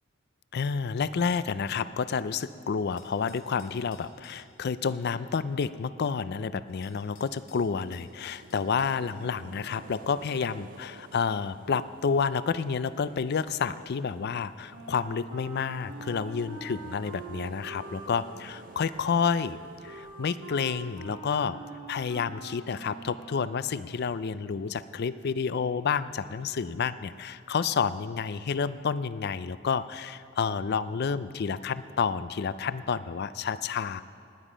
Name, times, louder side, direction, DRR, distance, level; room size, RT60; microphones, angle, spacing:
voice 1, 0.5-19.6 19.8-21.6 21.9-34.0, left 6 dB, 55° left, 15 dB, 0.4 m, -30 dB
sound 1, 3.0-4.5 6.3-6.4 6.8-9.0, left 6 dB, 75° left, 2.2 m, -58 dB
sound 2, 6.7-21.1, right 4 dB, 40° right, 0.5 m, -52 dB
Wind instrument woodwind instrument, 14.7-23.6, right 3 dB, 75° right, 1.8 m, -44 dB
19.5 x 9.3 x 5.1 m, 2.7 s
head